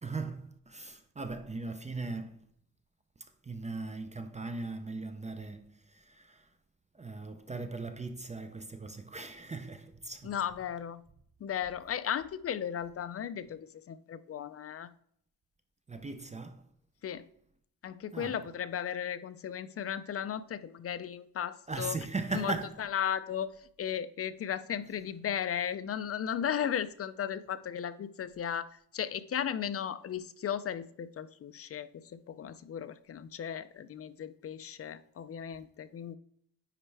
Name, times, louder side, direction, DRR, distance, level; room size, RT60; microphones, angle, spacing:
voice 1, 0.0-2.5 3.2-6.5 6.9-10.3 15.9-16.7 18.1-18.4 21.7-22.8, right 3 dB, 20° right, 0.5 m, -39 dB
voice 2, 10.2-11.0 11.4-14.9 17.0-17.3 17.8-22.0 22.3-22.5 22.8-23.5 23.8-36.2, left 9 dB, 40° left, 0.4 m, -36 dB
9.9 x 4.3 x 3.3 m
wide cardioid pair, 135°, 36 cm